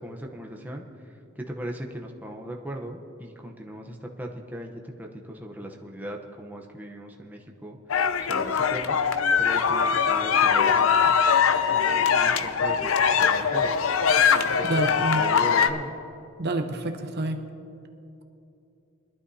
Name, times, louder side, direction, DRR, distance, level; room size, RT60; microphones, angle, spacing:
voice 1, 0.0-9.0 9.4-11.1 11.7-13.7 14.2-14.8 15.1-15.9, equal, 10° right, 1 dB, 0.8 m, -38 dB
sound 1, 7.9-15.7, left 6 dB, 65° left, 0.6 m, -22 dB
voice 2, 14.6-15.2 16.4-17.4, right 2 dB, 50° right, 5 dB, 0.8 m, -28 dB
22.0 x 12.0 x 2.8 m, 2.7 s
head